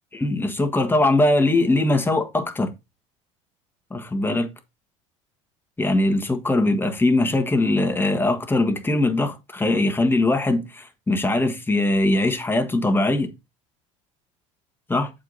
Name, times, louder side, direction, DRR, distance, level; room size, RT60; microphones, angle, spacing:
voice 1, 0.1-2.7 3.9-4.5 5.8-13.3 14.9-15.1, left 2 dB, 15° left, 1.5 m, -21 dB
7.5 x 4.7 x 4.0 m
hypercardioid pair, 75°, 16 cm